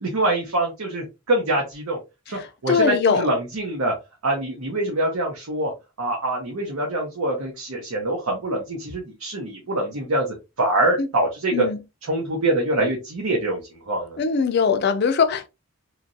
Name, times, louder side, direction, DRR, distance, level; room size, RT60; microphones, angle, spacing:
voice 1, 0.0-2.0 2.3-3.9 4.2-5.7 6.0-10.3 10.6-11.7 12.1-13.6 13.9-14.2, right 1 dB, 80° right, 0.8 m, -24 dB
voice 2, 2.3-3.3 11.0-11.1 11.5-11.8 14.2-15.5, left 6 dB, 45° left, 0.4 m, -21 dB
3.0 x 2.4 x 2.5 m
head